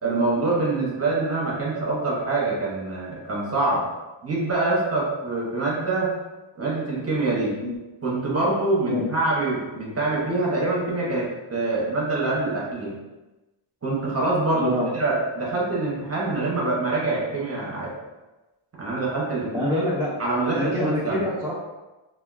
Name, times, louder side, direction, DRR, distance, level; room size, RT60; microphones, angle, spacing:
voice 1, 0.0-3.9 4.2-6.1 6.6-7.6 8.0-12.9 13.8-18.0 18.8-19.9 20.2-21.3, right 2 dB, 30° right, -4 dB, 0.7 m, -25 dB
voice 2, 19.5-20.1 20.5-21.5, left 1 dB, 5° right, -8 dB, 0.3 m, -25 dB
3.4 x 2.3 x 2.3 m, 1.1 s
wide cardioid pair, 170°, 50 cm